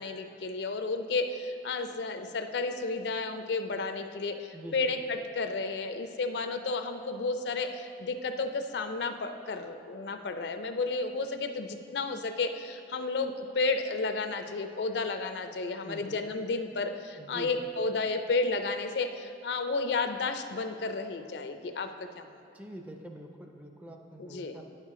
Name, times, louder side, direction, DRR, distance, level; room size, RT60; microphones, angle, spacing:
voice 1, 0.0-21.9 22.2-22.3 24.2-24.6, left 3 dB, 70° left, 8 dB, 0.4 m, -32 dB
voice 2, 4.5-4.9 15.8-16.2 17.2-17.7 22.5-24.6, right 1 dB, 10° right, 3 dB, 0.4 m, -45 dB
9.3 x 6.6 x 3.6 m, 2.4 s
head